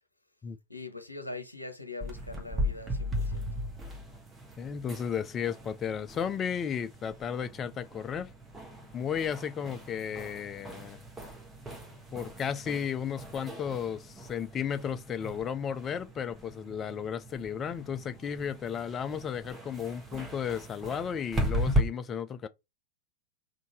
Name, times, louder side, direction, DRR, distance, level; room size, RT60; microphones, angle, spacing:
voice 1, 0.7-3.5, left 3 dB, 85° left, 0.8 m, -42 dB
sound 1, 2.0-21.8, equal, 15° right, 1.2 m, -37 dB
voice 2, 4.6-8.3 8.9-11.0 12.1-22.5, left 7 dB, 25° left, 0.5 m, -34 dB
3.7 x 2.7 x 4.4 m
figure-of-eight pair, 90°, 0 cm